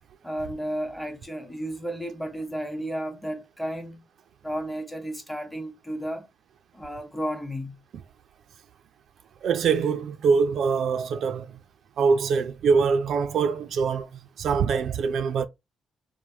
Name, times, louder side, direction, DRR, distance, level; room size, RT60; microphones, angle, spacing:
voice 1, 0.2-4.0 4.4-6.3 6.7-7.8, equal, 5° left, 0.9 m, -33 dB
voice 2, 9.4-11.6 12.0-15.5, right 5 dB, 65° right, 0.3 m, -24 dB
3.0 x 2.1 x 2.7 m
cardioid pair, 90°, 0 cm